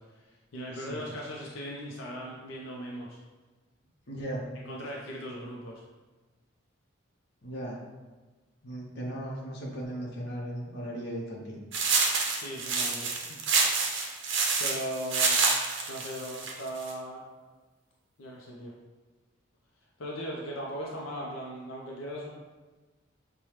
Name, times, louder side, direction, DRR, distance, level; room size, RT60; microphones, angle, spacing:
voice 1, 0.0-3.2 4.5-5.8 12.3-13.5 14.0-15.4 15.9-17.2 18.2-18.7 20.0-22.3, equal, 80° left, -3 dB, 0.6 m, -39 dB
voice 2, 0.7-1.0 4.1-4.4 7.4-7.8 8.6-11.6, right 1 dB, 55° left, -3 dB, 0.8 m, -37 dB
sound 1, 11.7-16.9, right 4 dB, 65° right, 0.5 m, -27 dB
5.5 x 2.2 x 3.1 m, 1.3 s
head